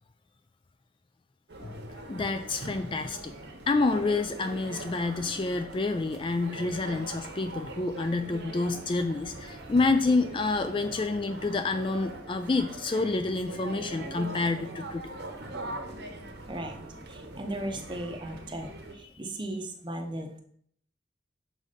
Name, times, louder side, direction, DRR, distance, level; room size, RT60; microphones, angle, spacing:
sound 1, 1.5-18.9, right 2 dB, 65° right, 1.0 m, -42 dB
voice 1, 1.6-3.3 3.7-15.1 19.0-19.1, left 3 dB, 25° left, 8 dB, 0.3 m, -28 dB
voice 2, 16.5-16.8 17.1-20.4, right 1 dB, 25° right, 4 dB, 0.7 m, -36 dB
6.1 x 4.1 x 5.1 m, 0.64 s
head